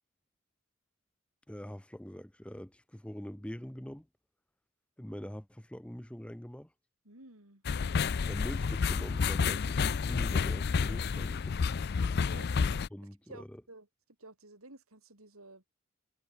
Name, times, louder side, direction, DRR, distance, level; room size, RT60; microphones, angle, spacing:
voice 1, 1.5-4.1 5.0-6.7 8.3-11.6 12.9-13.6, equal, 5° left, 0.7 m, -43 dB
voice 2, 7.0-7.6 12.3-12.5 13.3-13.9 14.2-15.7, right 2 dB, 75° right, 4.3 m, -52 dB
sound 1, 7.7-12.9, left 5 dB, 45° left, 0.4 m, -30 dB
head